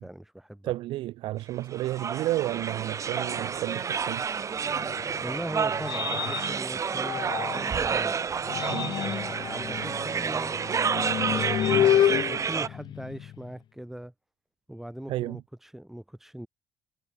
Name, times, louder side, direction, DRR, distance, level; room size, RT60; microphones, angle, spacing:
voice 1, 0.0-0.7 5.2-8.4 9.0-10.7 11.2-14.1 14.7-16.5, right 1 dB, 5° right, 7.2 m, -40 dB
voice 2, 0.6-4.3 8.7-9.0 15.1-15.4, right 16 dB, 80° right, 3.0 m, -31 dB
sound 1, 1.7-12.7, right 6 dB, 35° right, 2.9 m, -30 dB
sound 2, 4.7-7.8 8.3-13.5, left 11 dB, 60° left, 1.4 m, -29 dB
cardioid pair, 110°, 9 cm